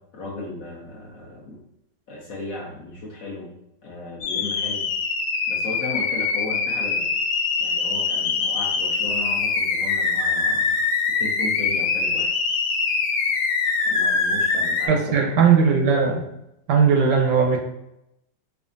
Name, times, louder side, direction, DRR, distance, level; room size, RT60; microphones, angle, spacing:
voice 1, 0.1-1.6 2.1-3.5 3.8-4.9 5.5-7.1 7.6-10.8 11.2-12.3 13.9-15.4, left 2 dB, 60° left, -3 dB, 1.0 m, -35 dB
sound 1, 4.2-14.9, left 4 dB, 90° left, 1.3 m, -23 dB
voice 2, 14.9-16.2 16.7-17.6, right 6 dB, 75° right, 2 dB, 1.1 m, -18 dB
5.0 x 2.3 x 2.5 m, 0.83 s
omnidirectional pair, 2.0 m